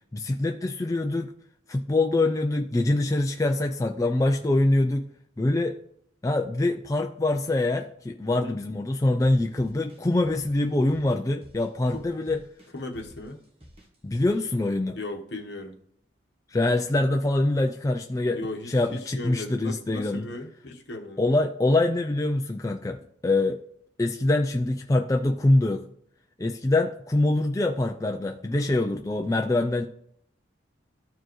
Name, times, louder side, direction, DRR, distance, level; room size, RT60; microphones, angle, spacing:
voice 1, 0.1-1.3 1.7-5.1 5.4-5.8 6.2-12.4 14.0-15.0 16.5-18.4 18.7-20.3 21.2-23.6 24.0-25.9 26.4-29.9, left 2 dB, 15° left, 4 dB, 0.3 m, -24 dB
sound 1, 9.2-14.5, equal, 30° right, 1.2 m, -52 dB
voice 2, 12.7-13.4 14.9-15.8 18.3-21.2, left 2 dB, 60° left, 2 dB, 1.2 m, -37 dB
13.5 x 4.6 x 3.1 m, 0.68 s
head